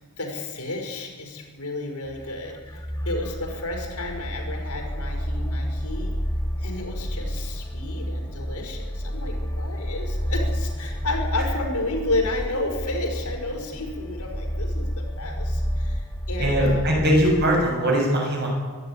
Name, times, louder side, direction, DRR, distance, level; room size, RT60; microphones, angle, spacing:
voice 1, 0.2-6.1 6.5-17.0, left 2 dB, 80° left, 1 dB, 5.2 m, -32 dB
sound 1, 2.0-17.6, equal, 15° left, 1.7 m, -30 dB
voice 2, 16.4-18.5, equal, 50° right, 0 dB, 6.9 m, -21 dB
22.5 x 12.0 x 10.0 m, 1.5 s
head